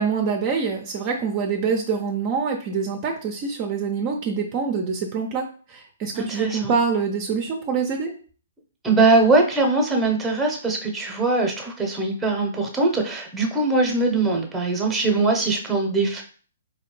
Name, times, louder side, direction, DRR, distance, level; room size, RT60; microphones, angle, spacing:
voice 1, 0.0-8.1, right 5 dB, 35° right, 3 dB, 0.5 m, -25 dB
voice 2, 6.1-6.8 8.8-16.2, right 3 dB, 5° right, 2 dB, 0.9 m, -21 dB
4.1 x 2.8 x 3.2 m, 0.43 s
figure-of-eight pair, 130°, 0 cm